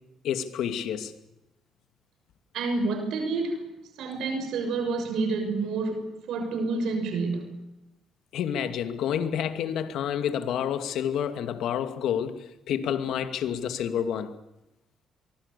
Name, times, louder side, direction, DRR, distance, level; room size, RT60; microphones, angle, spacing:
voice 1, 0.2-1.1 8.3-14.3, left 9 dB, 80° left, 2.4 m, -29 dB
voice 2, 2.5-3.6 4.0-7.6, right 3 dB, 80° right, 6.5 m, -29 dB
24.5 x 23.5 x 7.0 m
cardioid pair, 90°, 0 cm